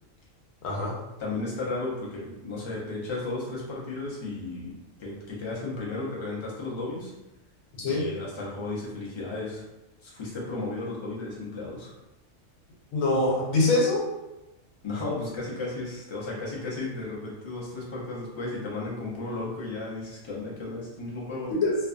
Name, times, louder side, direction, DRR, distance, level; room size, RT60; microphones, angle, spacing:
voice 1, 0.6-1.0 7.8-8.1 12.9-14.1 21.5-21.8, left 2 dB, 85° left, -3 dB, 1.1 m, -24 dB
voice 2, 1.2-7.1 7.8-9.7 10.0-11.9 14.8-21.5, left 2 dB, 35° left, -5 dB, 0.4 m, -34 dB
2.6 x 2.2 x 2.4 m, 0.98 s
omnidirectional pair, 1.4 m